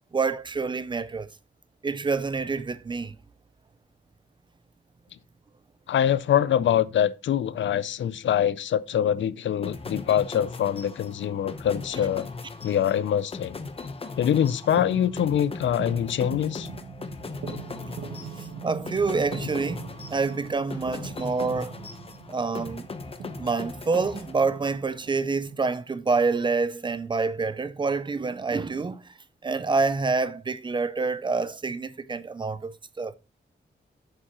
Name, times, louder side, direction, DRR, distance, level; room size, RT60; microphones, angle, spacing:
voice 1, 0.1-1.3 1.8-3.1 18.6-21.7 22.3-22.9 23.4-29.1 29.4-33.1, right 4 dB, 25° right, 0.4 m, -27 dB
voice 2, 5.9-12.3 12.6-13.6 14.2-16.7, left 10 dB, 80° left, 0.5 m, -24 dB
sound 1, 9.6-24.9, left 3 dB, 30° left, 0.8 m, -39 dB
sound 2, 14.7-25.6, right 5 dB, 85° right, 1.2 m, -41 dB
8.7 x 7.2 x 2.9 m
wide cardioid pair, 175°, 19 cm